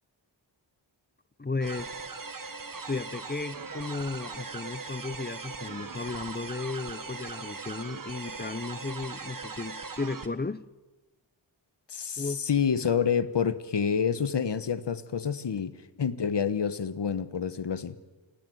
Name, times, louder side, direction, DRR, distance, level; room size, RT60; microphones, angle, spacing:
voice 1, 1.4-1.9 2.9-10.6 12.2-12.5, left 3 dB, 20° left, 0.7 m, -34 dB
sound 1, 1.6-10.3, right 4 dB, 45° right, 1.7 m, -40 dB
voice 2, 11.9-18.0, left 7 dB, 60° left, 1.3 m, -28 dB
28.5 x 19.5 x 7.9 m
wide cardioid pair, 100°, 46 cm